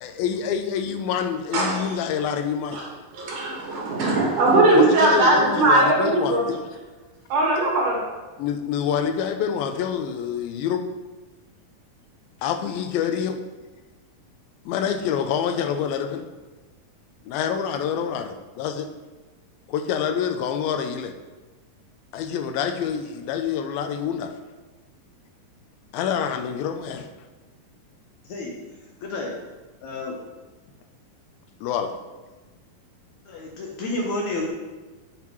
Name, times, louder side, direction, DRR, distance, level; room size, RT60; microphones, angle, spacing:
voice 1, 0.0-2.8 4.7-6.7 8.4-10.9 12.4-13.4 14.7-16.3 17.2-18.9 19.7-21.2 22.1-24.3 25.9-27.1 31.6-31.9, left 8 dB, 90° left, 7 dB, 2.5 m, -26 dB
voice 2, 3.1-6.4 7.3-8.0, right 2 dB, 65° right, -2 dB, 3.0 m, -19 dB
voice 3, 29.0-29.4 29.8-30.2 33.3-34.5, left 2 dB, 70° left, -2 dB, 1.9 m, -30 dB
9.3 x 7.4 x 3.1 m, 1.2 s
omnidirectional pair, 4.1 m